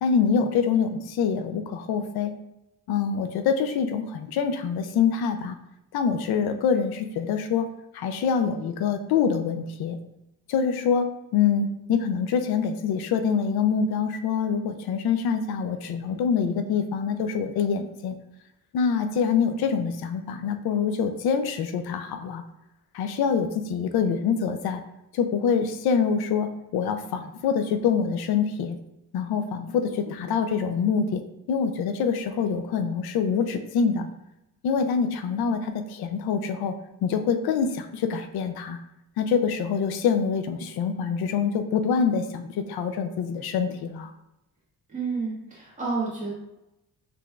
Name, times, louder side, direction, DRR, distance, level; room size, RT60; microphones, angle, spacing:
voice 1, 0.0-2.3 2.9-5.6 5.9-7.7 7.9-10.0 10.5-11.1 11.3-18.1 18.7-22.4 22.9-24.8 25.1-28.8 29.1-31.2 31.5-34.1 34.6-36.7 37.0-38.8 39.2-44.1, left 6 dB, 90° left, 7 dB, 0.5 m, -25 dB
voice 2, 44.9-46.3, right 4 dB, 20° right, -7 dB, 1.5 m, -30 dB
6.0 x 3.2 x 2.3 m, 0.88 s
wide cardioid pair, 180°, 36 cm